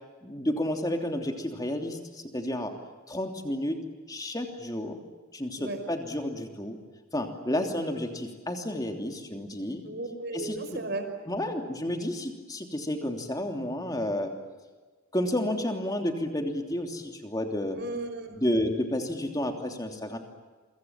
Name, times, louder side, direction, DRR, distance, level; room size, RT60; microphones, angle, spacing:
voice 1, 0.2-2.7 3.1-3.8 4.1-5.0 5.3-6.8 7.1-9.8 10.3-10.8 11.3-14.3 15.1-17.8 18.4-20.2, left 1 dB, 15° left, 4 dB, 3.1 m, -31 dB
voice 2, 9.9-11.1 17.7-18.4, right 2 dB, 50° right, 6 dB, 5.2 m, -35 dB
28.5 x 24.5 x 7.4 m, 1.3 s
head